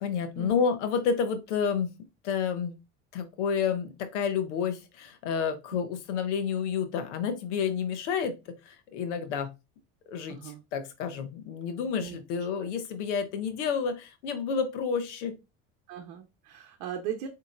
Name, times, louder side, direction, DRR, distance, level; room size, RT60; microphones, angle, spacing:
voice 1, 0.0-1.9 2.2-2.7 3.1-8.4 8.7-9.5 10.1-15.4, left 6 dB, 85° left, 8 dB, 0.8 m, -30 dB
voice 2, 10.3-10.6 12.0-12.2 12.6-12.7 15.9-17.3, right 9 dB, 70° right, 3 dB, 0.8 m, -38 dB
4.0 x 2.8 x 2.4 m, 0.25 s
supercardioid pair, 80°, 34 cm